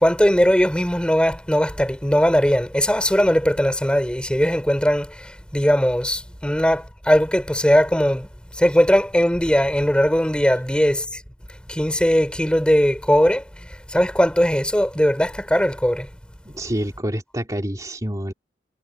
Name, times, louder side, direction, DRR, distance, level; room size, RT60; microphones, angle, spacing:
voice 1, 0.0-8.3 8.6-11.0 11.7-13.4 13.9-16.1, equal, 5° left, 3.1 m, -19 dB
voice 2, 16.4-18.3, right 1 dB, 20° right, 2.7 m, -27 dB
head